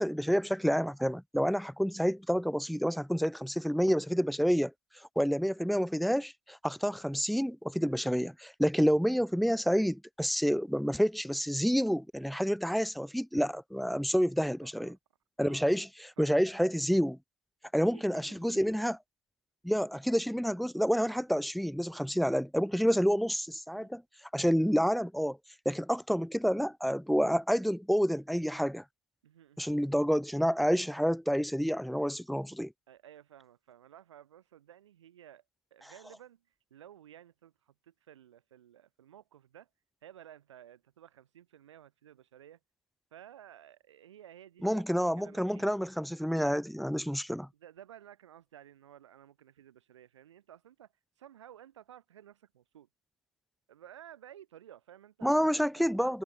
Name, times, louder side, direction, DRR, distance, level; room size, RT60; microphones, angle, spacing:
voice 1, 0.0-4.7 5.2-15.0 15.4-15.9 16.2-17.2 17.7-19.0 19.6-24.0 24.3-25.4 25.7-28.8 29.6-32.7 44.6-47.5 55.2-56.2, equal, ahead, 0.4 m, -29 dB
voice 2, 14.4-15.0 15.4-15.8 16.2-16.4 17.9-18.9 23.7-23.9 29.2-29.8 32.9-35.4 35.7-36.4 36.7-39.7 40.0-42.6 43.1-45.7 47.6-50.9 51.2-52.9 53.7-56.2, right 11 dB, 80° right, 1.5 m, -54 dB
hypercardioid pair, 105°, 15 cm